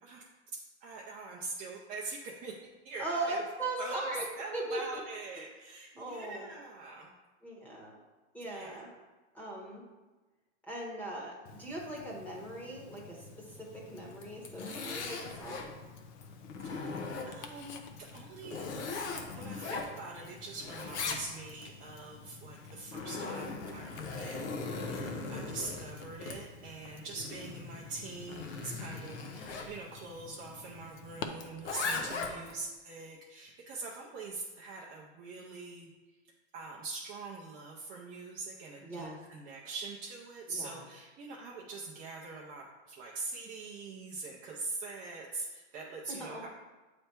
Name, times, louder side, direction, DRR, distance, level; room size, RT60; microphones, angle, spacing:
voice 1, 0.8-2.5 2.8-3.4 3.8-4.1 4.4-7.1 8.4-8.9 16.6-17.8 18.1-18.7 19.3-35.9 36.5-46.5, right 3 dB, 25° right, -2 dB, 0.5 m, -43 dB
voice 2, 3.0-4.2 4.5-5.0 6.0-6.5 7.4-8.0 8.3-8.9 9.3-9.8 10.6-11.3 11.6-15.7 25.2-25.5 31.9-32.0 38.8-39.2 40.5-40.8 46.1-46.4, right 2 dB, 5° left, -3 dB, 1.0 m, -39 dB
Tick-tock, 11.5-31.3, left 5 dB, 45° left, 0.6 m, -51 dB
Zipper (clothing), 14.2-15.7 16.2-17.6 18.1-20.3 20.6-21.7 22.6-29.7 31.4-32.6, left 4 dB, 85° left, 1.1 m, -39 dB
7.6 x 3.4 x 4.4 m, 1.2 s
supercardioid pair, 155°, 34 cm